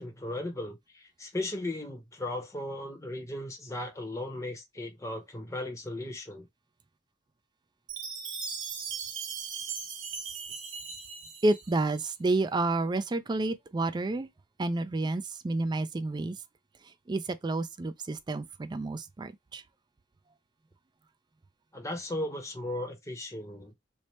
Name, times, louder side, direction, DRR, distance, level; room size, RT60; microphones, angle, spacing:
voice 1, 0.0-6.5 21.7-23.7, left 1 dB, 15° left, 0.8 m, -36 dB
Chime, 7.9-12.0, right 6 dB, 85° right, 0.8 m, -38 dB
voice 2, 11.4-14.3 14.6-16.4 17.1-19.6, right 2 dB, 25° right, 0.3 m, -30 dB
3.2 x 2.0 x 4.2 m
head